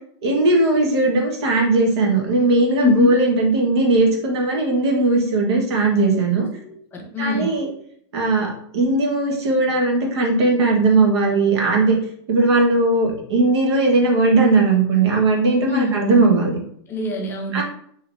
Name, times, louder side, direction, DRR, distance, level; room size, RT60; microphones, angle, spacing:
voice 1, 0.2-6.5 7.2-7.7 8.1-12.0 12.3-16.6 17.5-17.6, right 3 dB, 80° right, 0 dB, 1.1 m, -18 dB
voice 2, 2.8-3.2 6.6-7.6 15.6-16.0 16.9-17.6, left 4 dB, 15° left, 1 dB, 0.4 m, -24 dB
3.2 x 3.1 x 2.5 m, 0.66 s
supercardioid pair, 160°, 14 cm